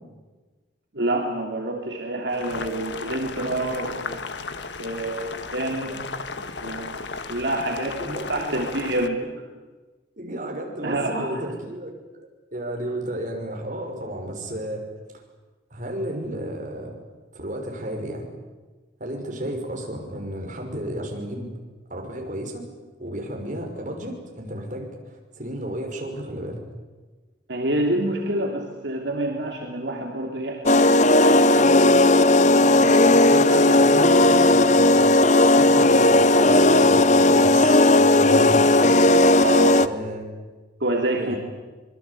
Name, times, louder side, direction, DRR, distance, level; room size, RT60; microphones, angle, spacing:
voice 1, 0.9-4.4 4.8-5.9 6.6-9.2 10.8-11.3 27.5-33.0 33.5-34.0 39.4-39.8 40.8-41.3, right 1 dB, 70° right, 0 dB, 3.1 m, -28 dB
Boiling, 2.3-9.1, left 4 dB, 75° left, 1.5 m, -34 dB
voice 2, 8.0-8.8 10.2-14.9 15.7-17.0 17.3-18.3 19.0-21.5 21.9-22.6 23.0-26.6 32.8-35.1 35.4-38.7 39.7-40.3 41.2-41.4, right 1 dB, 45° right, 1 dB, 5.9 m, -32 dB
sound 1, 30.7-39.9, left 2 dB, 40° left, 0.8 m, -16 dB
26.0 x 22.5 x 8.5 m, 1.3 s
head